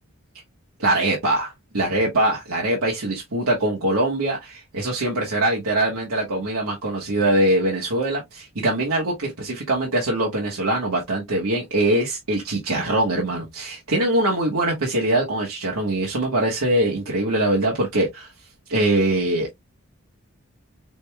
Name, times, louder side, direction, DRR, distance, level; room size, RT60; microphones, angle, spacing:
voice 1, 0.8-18.3 18.7-19.5, right 1 dB, 90° right, 1.3 m, -22 dB
5.2 x 3.3 x 2.3 m
head